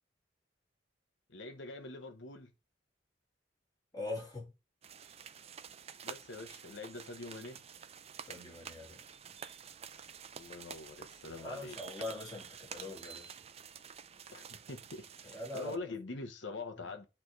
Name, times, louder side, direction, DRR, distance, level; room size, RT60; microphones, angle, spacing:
voice 1, 1.3-2.5 6.0-7.6 10.3-11.8 14.3-17.0, left 3 dB, 85° left, 1.0 m, -44 dB
voice 2, 3.9-4.5 8.3-9.0 11.4-13.4 15.3-15.8, left 2 dB, 20° left, 2.8 m, -42 dB
sound 1, 4.8-15.8, right 7 dB, 35° right, 0.5 m, -50 dB
8.9 x 3.4 x 4.6 m
head